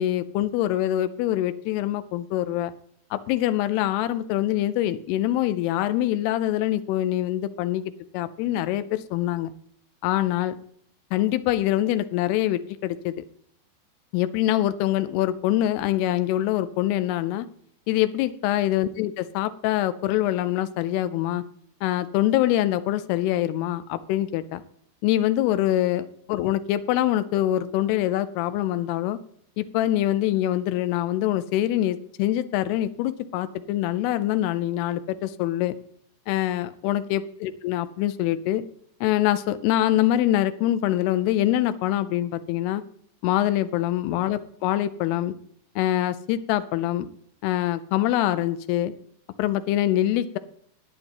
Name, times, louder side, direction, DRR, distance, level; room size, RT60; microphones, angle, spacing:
voice 1, 0.0-2.7 3.1-7.8 8.1-9.5 10.0-10.6 11.1-13.2 14.1-17.5 17.9-21.4 21.8-24.6 25.0-29.2 29.6-35.8 36.3-38.6 39.0-42.8 43.2-45.3 45.8-47.1 47.4-48.9 49.4-50.4, left 13 dB, 80° left, 12 dB, 2.5 m, -24 dB
16.5 x 9.3 x 2.9 m, 0.65 s
omnidirectional pair, 5.2 m